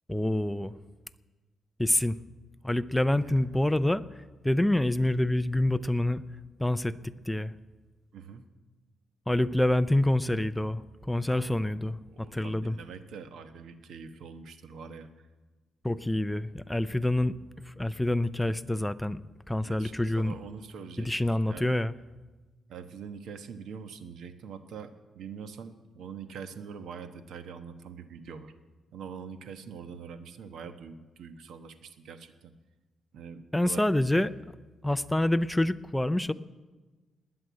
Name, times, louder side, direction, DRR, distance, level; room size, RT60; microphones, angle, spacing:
voice 1, 0.1-0.7 1.8-2.2 2.6-4.0 4.4-6.2 6.6-7.5 9.3-12.0 12.3-12.8 15.8-17.3 17.8-19.2 19.5-20.3 21.0-21.9 33.5-34.3 34.8-36.3, left 1 dB, 5° left, 13 dB, 0.4 m, -27 dB
voice 2, 3.2-3.5 8.1-8.4 11.3-15.1 19.6-21.7 22.7-28.5 28.9-32.5 33.1-33.9, right 6 dB, 65° right, 9 dB, 1.2 m, -44 dB
20.0 x 7.7 x 9.5 m, 1.3 s
cardioid pair, 165°, 0 cm